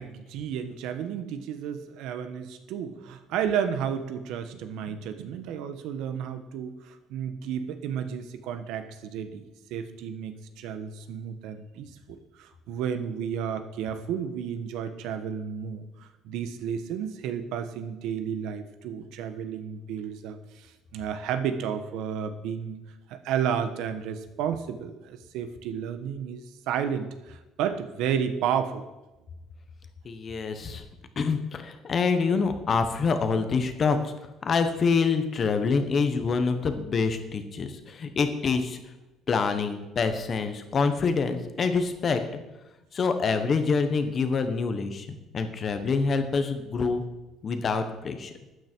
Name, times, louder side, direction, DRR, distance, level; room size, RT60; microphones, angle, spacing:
voice 1, 0.0-9.4 9.7-22.8 23.1-28.8, right 8 dB, 75° right, 10 dB, 1.2 m, -32 dB
voice 2, 30.0-30.8 31.2-34.0 34.4-38.8 39.3-42.4 42.9-47.0 47.4-48.3, left 5 dB, 30° left, 8 dB, 1.2 m, -26 dB
12.5 x 9.4 x 4.6 m, 1.0 s
cardioid pair, 150°, 0 cm